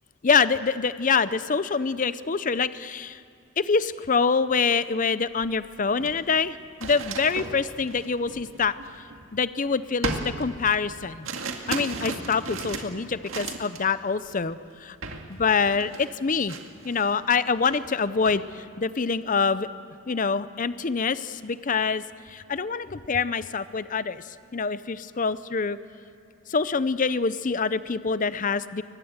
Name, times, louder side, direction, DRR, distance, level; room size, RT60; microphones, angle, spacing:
voice 1, 0.2-3.2 3.6-8.7 9.3-11.3 11.7-15.0 15.3-16.6 16.8-19.7 20.1-22.0 22.3-24.2 24.5-25.8 26.5-28.8, left 5 dB, 35° left, 14 dB, 0.5 m, -25 dB
sound 1, 5.4-5.5 5.9-9.5 10.0-13.9 14.2-14.5 15.0-15.3 15.5-17.2 17.5-18.4, right 3 dB, 60° right, 2.0 m, -36 dB
23.5 x 20.0 x 7.9 m, 2.5 s
head